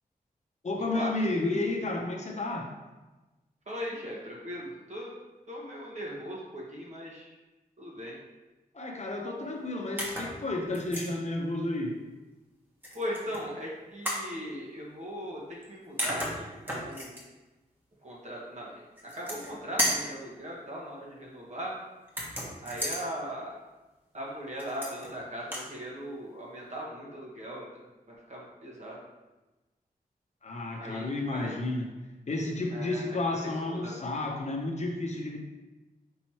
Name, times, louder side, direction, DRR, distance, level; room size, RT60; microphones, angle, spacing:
voice 1, 0.6-2.7 8.7-12.0 30.4-31.9 32.3-35.4, left 2 dB, 45° left, 1 dB, 0.7 m, -31 dB
voice 2, 3.7-5.1 5.5-7.3 7.8-8.2 12.9-15.4 15.7-17.2 18.0-18.7 19.1-21.7 22.6-23.5 24.1-27.6 28.3-29.0 30.8-31.6 32.7-33.2 33.7-33.9, equal, 50° right, -4 dB, 1.3 m, -39 dB
sound 1, 10.0-10.3 10.7-11.1 12.8-13.4 14.0-14.3 15.6-15.7 16.0-17.2 19.0-19.5 19.8-20.1 22.1-23.0 24.6-25.1 25.4-25.7, equal, 10° right, 1.2 m, -33 dB
5.4 x 3.0 x 3.0 m, 1.1 s
cardioid pair, 65°, 16 cm